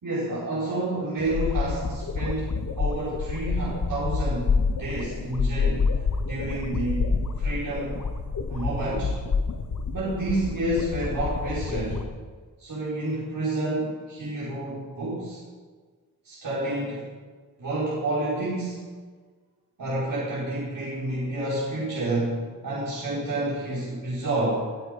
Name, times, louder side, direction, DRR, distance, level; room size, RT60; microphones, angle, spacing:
voice 1, 0.0-4.5 4.8-5.9 6.3-7.1 7.4-8.0 8.5-9.2 9.9-12.0 12.6-15.4 16.2-17.0 17.6-18.8 19.8-22.4 22.6-24.7, right 2 dB, 65° right, -9 dB, 4.7 m, -29 dB
sound 1, 1.2-12.0, left 4 dB, 55° left, 1.1 m, -28 dB
21.0 x 9.9 x 5.2 m, 1.5 s
wide cardioid pair, 165°, 36 cm